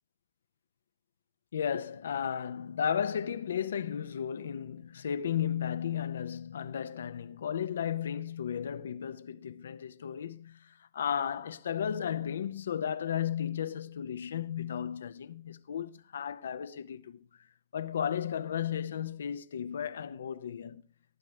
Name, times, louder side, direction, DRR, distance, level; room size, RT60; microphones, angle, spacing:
voice 1, 1.5-17.3 17.7-20.8, left 8 dB, 90° left, 0.6 m, -34 dB
18.5 x 8.5 x 3.2 m
hypercardioid pair, 115°, 0 cm